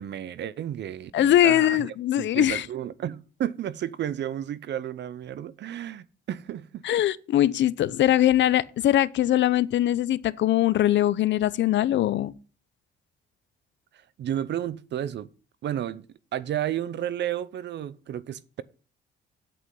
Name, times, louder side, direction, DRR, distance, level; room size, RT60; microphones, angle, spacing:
voice 1, 0.0-7.0 14.2-15.3 15.6-16.1 16.3-18.6, right 11 dB, 60° right, 0.7 m, -32 dB
voice 2, 1.1-2.7 6.8-12.3, left 12 dB, 70° left, 0.6 m, -22 dB
8.4 x 7.9 x 5.5 m
cardioid pair, 90°, 20 cm